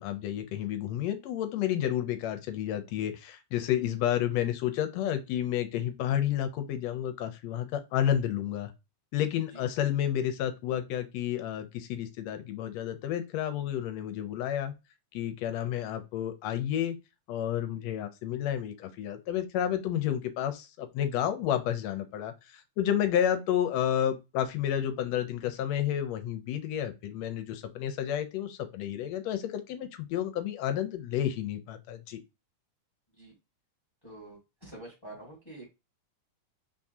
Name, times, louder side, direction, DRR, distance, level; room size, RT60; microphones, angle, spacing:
voice 1, 0.0-8.7 9.1-14.7 15.1-17.0 17.3-32.2, left 10 dB, 75° left, 8 dB, 1.6 m, -31 dB
voice 2, 34.0-34.4 34.6-35.7, right 1 dB, 10° left, -2 dB, 1.4 m, -46 dB
4.3 x 3.6 x 2.6 m, 0.25 s
omnidirectional pair, 3.4 m